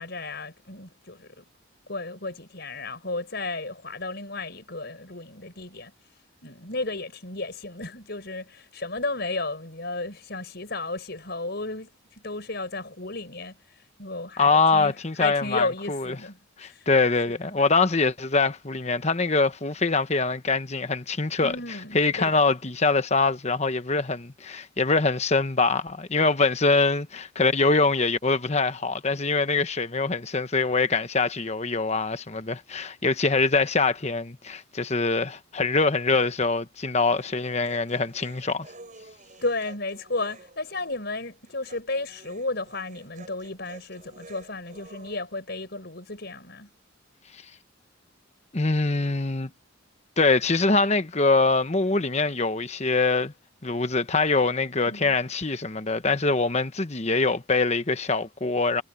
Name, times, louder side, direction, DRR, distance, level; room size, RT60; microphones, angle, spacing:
voice 1, 0.0-1.4 1.9-5.9 6.4-16.9 17.3-17.6 21.4-22.4 39.4-46.7 54.8-55.2, left 2 dB, 55° left, 5.8 m, -33 dB
voice 2, 14.4-16.1 16.6-21.5 21.9-38.7 48.5-49.5 50.2-53.3 53.6-58.8, left 3 dB, 35° left, 1.1 m, -24 dB
Human voice, 37.2-45.2, right 2 dB, 40° right, 7.2 m, -50 dB
head